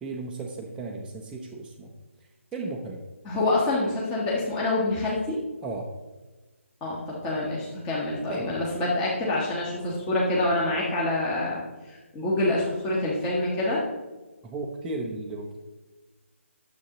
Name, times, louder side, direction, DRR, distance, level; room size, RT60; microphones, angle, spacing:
voice 1, 0.0-1.9 2.5-3.0 5.6-5.9 8.3-8.6 14.4-15.6, right 3 dB, 10° right, -5 dB, 0.6 m, -35 dB
voice 2, 3.2-5.4 6.8-13.8, left 2 dB, 15° left, -5 dB, 1.3 m, -26 dB
9.6 x 7.6 x 3.0 m, 1.2 s
figure-of-eight pair, 150°, 7 cm